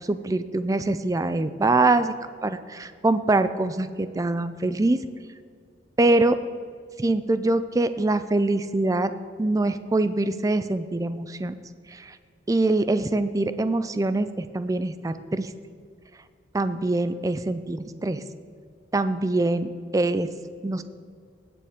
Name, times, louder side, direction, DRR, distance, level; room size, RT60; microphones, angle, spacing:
voice 1, 0.1-2.1 2.4-5.0 6.0-6.4 7.0-9.1 9.4-11.5 11.9-12.1 12.5-15.5 16.5-18.2 18.9-20.3 20.6-20.8, right 2 dB, 20° right, 12 dB, 0.3 m, -24 dB
17.0 x 6.9 x 3.6 m, 2.1 s
head